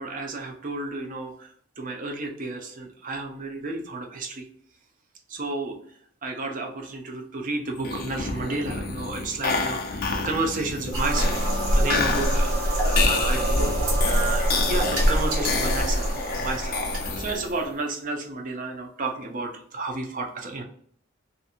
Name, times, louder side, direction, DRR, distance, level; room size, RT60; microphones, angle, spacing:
voice 1, 0.0-4.4 5.3-5.8 6.2-13.6 14.0-16.8 17.2-20.6, right 3 dB, 40° right, 2 dB, 0.5 m, -32 dB
sound 1, 7.8-17.7, left 4 dB, 45° left, 0.5 m, -30 dB
sound 2, 10.9-17.5, equal, 70° right, 1.0 m, -24 dB
2.7 x 2.5 x 2.5 m, 0.63 s
head